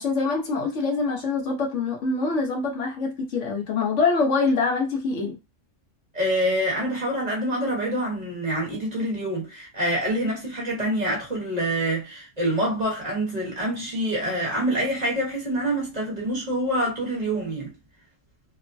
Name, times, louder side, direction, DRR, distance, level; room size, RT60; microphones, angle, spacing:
voice 1, 0.0-5.4, left 4 dB, 70° left, 1.2 m, -24 dB
voice 2, 6.1-17.7, right 1 dB, 35° right, 1.2 m, -26 dB
3.0 x 2.1 x 2.6 m
omnidirectional pair, 1.3 m